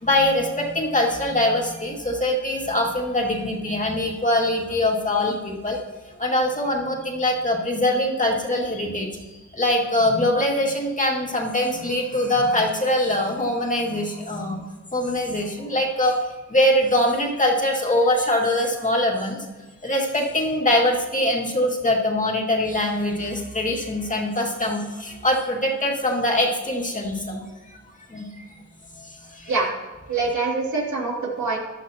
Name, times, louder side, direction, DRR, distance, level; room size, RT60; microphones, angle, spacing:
voice 1, 0.0-5.8 6.2-9.1 9.5-14.6 14.9-16.2 16.5-19.4 19.8-27.4 28.1-28.3 29.0-29.5, left 1 dB, 25° left, -1 dB, 2.3 m, -23 dB
voice 2, 30.1-31.6, right 3 dB, 70° right, -2 dB, 2.9 m, -24 dB
15.0 x 11.5 x 2.9 m, 1.2 s
wide cardioid pair, 90°, 30 cm